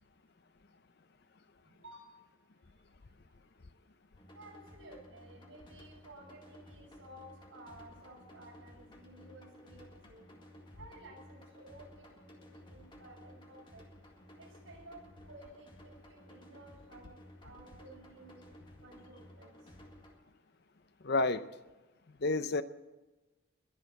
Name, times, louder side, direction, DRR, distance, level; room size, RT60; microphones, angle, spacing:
voice 1, 1.6-2.1 4.3-10.3 10.7-13.8 14.4-17.1 17.4-18.4 18.8-19.5, right 1 dB, 70° right, -1 dB, 6.9 m, -54 dB
sound 1, 4.2-20.2, equal, 25° left, 2.0 m, -56 dB
voice 2, 21.0-21.4 22.2-22.6, left 3 dB, 50° left, 13 dB, 0.6 m, -29 dB
21.5 x 7.5 x 8.1 m, 1.1 s
head